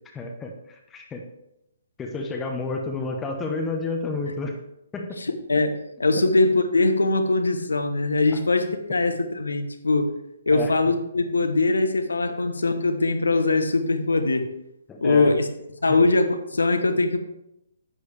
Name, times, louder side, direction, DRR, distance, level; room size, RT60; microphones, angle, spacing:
voice 1, 0.1-1.2 2.0-4.6 4.9-5.2 10.5-10.7 14.9-15.4 15.9-16.0, left 3 dB, 10° left, 2 dB, 1.0 m, -30 dB
voice 2, 5.2-10.1 10.5-14.5 15.0-15.5 15.8-17.2, left 3 dB, 70° left, 8 dB, 1.1 m, -22 dB
11.0 x 8.1 x 3.3 m, 0.84 s
figure-of-eight pair, 130°, 0 cm